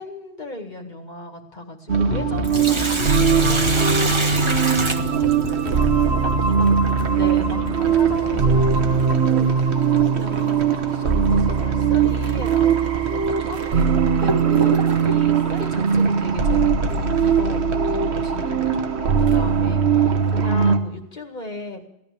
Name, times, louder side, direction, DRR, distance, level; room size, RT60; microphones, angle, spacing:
voice 1, 0.0-6.7 7.1-14.8 15.0-21.9, left 2 dB, 45° left, 3 dB, 2.1 m, -36 dB
sound 1, 1.9-20.8, right 6 dB, 85° right, 1.4 m, -20 dB
sound 2, 2.1-9.1, left 9 dB, 75° left, 1.0 m, -32 dB
Sink (filling or washing), 2.2-5.8 8.2-8.3 10.2-10.4 10.9-11.0 11.8-11.9 12.6-12.7 13.4-15.3, right 2 dB, 30° right, 1.2 m, -26 dB
16.5 x 12.0 x 6.7 m, 0.83 s
omnidirectional pair, 1.1 m